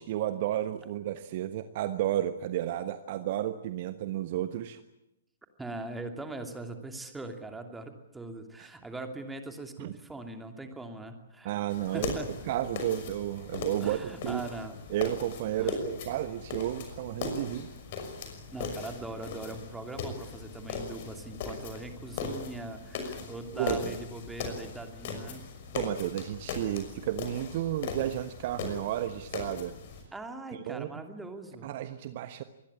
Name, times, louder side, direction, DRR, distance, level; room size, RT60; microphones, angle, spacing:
voice 1, 0.0-4.8 8.6-8.7 9.8-9.9 11.4-12.1 12.5-14.4 14.9-17.7 23.5-23.9 25.7-29.7 30.5-31.0 31.6-32.4, right 12 dB, 40° right, 11 dB, 1.2 m, -32 dB
voice 2, 5.6-11.5 11.9-12.3 13.8-14.8 15.6-15.8 18.5-25.4 30.1-31.7, right 2 dB, 5° right, 5 dB, 2.7 m, -41 dB
sound 1, 11.7-30.0, left 5 dB, 40° left, 5.9 m, -39 dB
26.0 x 20.5 x 8.6 m, 0.88 s
figure-of-eight pair, 115°, 0 cm